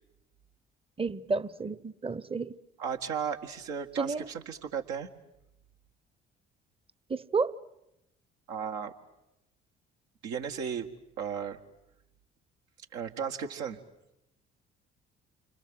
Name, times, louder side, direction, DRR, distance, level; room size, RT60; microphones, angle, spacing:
voice 1, 1.0-2.5 4.0-4.3 7.1-7.5, right 4 dB, 20° right, 1.0 m, -31 dB
voice 2, 2.8-5.1 8.5-8.9 10.2-10.9 11.2-11.6 12.9-13.8, right 7 dB, 70° right, 1.9 m, -35 dB
29.5 x 25.5 x 7.9 m
hypercardioid pair, 50°, 29 cm